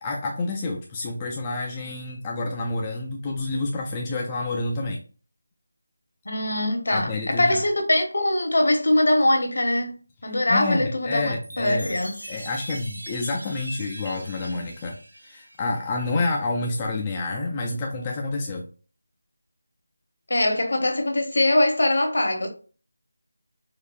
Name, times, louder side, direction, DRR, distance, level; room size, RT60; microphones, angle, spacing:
voice 1, 0.0-5.0 6.9-7.6 10.3-12.0 12.3-18.6, left 2 dB, 15° left, 0.3 m, -28 dB
voice 2, 6.2-12.2 20.3-22.5, left 1 dB, 65° left, 1.0 m, -22 dB
Chime, 11.4-16.0, right 1 dB, 90° right, 0.9 m, -41 dB
4.5 x 2.4 x 2.4 m
figure-of-eight pair, 175°, 0 cm